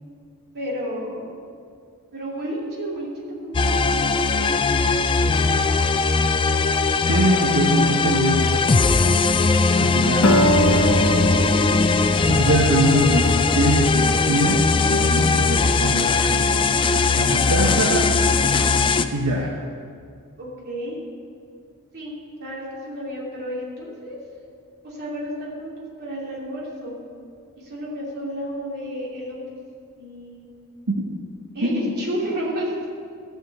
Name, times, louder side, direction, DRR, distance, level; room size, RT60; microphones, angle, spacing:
voice 1, 0.5-1.4 2.1-4.6 20.4-21.0 21.9-24.2 24.8-25.7 26.0-26.9 27.6-29.4 30.0-30.5 31.5-32.9, equal, 45° right, -5 dB, 2.8 m, -31 dB
sound 1, 3.5-19.0, left 4 dB, 20° left, 0.3 m, -19 dB
voice 2, 7.1-8.6 9.8-10.4 12.3-16.3 17.2-18.1 19.1-19.5 30.9-31.0 31.6-31.9, right 1 dB, 75° right, -2 dB, 1.0 m, -23 dB
Acoustic guitar, 10.2-14.7, equal, 70° left, 0.9 m, -23 dB
13.0 x 5.1 x 7.8 m, 2.3 s
head